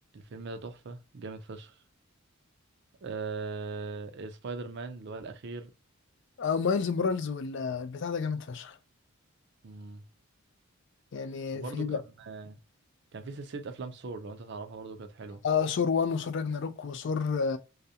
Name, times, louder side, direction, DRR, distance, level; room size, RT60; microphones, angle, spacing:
voice 1, 0.0-1.7 3.0-5.7 9.6-10.0 11.5-11.9 12.2-12.6 13.1-15.4, right 4 dB, 50° right, 0.4 m, -40 dB
voice 2, 6.4-8.8 11.1-12.0 15.4-17.6, left 5 dB, 55° left, 0.3 m, -29 dB
2.4 x 2.1 x 2.7 m
head